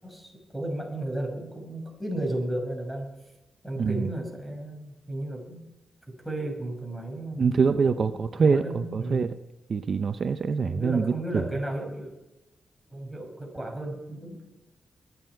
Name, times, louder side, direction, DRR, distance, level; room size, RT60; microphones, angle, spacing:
voice 1, 0.0-3.1 3.6-5.6 6.1-9.3 10.6-12.1 12.9-14.4, right 1 dB, ahead, -1 dB, 5.4 m, -34 dB
voice 2, 3.8-4.1 7.4-9.3 9.7-11.4, right 5 dB, 55° right, 10 dB, 0.7 m, -25 dB
24.0 x 9.5 x 4.7 m, 1.0 s
cardioid pair, 85°, 0 cm